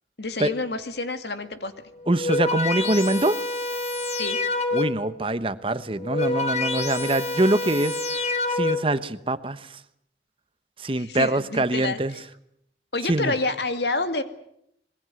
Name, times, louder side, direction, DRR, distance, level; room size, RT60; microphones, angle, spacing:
voice 1, 0.2-1.7 4.2-4.4 11.0-12.0 12.9-14.2, left 3 dB, 70° left, 8 dB, 2.2 m, -28 dB
sound 1, 2.0-5.1 5.9-9.0, left 2 dB, 40° left, 2.9 m, -27 dB
voice 2, 2.1-3.4 4.7-9.6 10.8-12.1 13.1-13.3, right 1 dB, 30° right, 13 dB, 1.1 m, -24 dB
26.5 x 21.5 x 7.8 m, 0.75 s
head